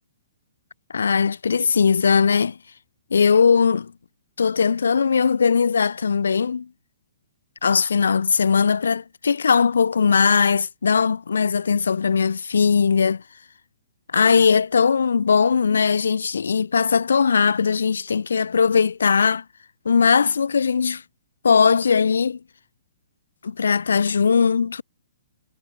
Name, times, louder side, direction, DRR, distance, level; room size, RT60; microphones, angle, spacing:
voice 1, 0.9-2.6 3.1-3.9 4.4-6.7 7.6-13.2 14.1-19.4 19.9-21.0 21.4-22.4 23.4-24.8, left 6 dB, 70° left, 3.6 m, -19 dB
figure-of-eight pair, 120°, 0 cm